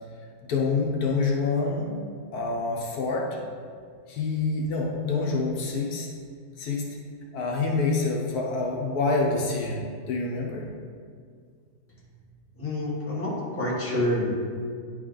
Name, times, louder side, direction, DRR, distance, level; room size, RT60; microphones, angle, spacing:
voice 1, 0.5-1.9 2.3-3.2 4.1-6.1 6.6-6.8 7.3-10.7, left 3 dB, 75° left, -2 dB, 1.3 m, -26 dB
voice 2, 12.6-14.4, left 1 dB, 10° left, -6 dB, 1.1 m, -27 dB
9.3 x 3.3 x 3.8 m, 2.1 s
omnidirectional pair, 1.7 m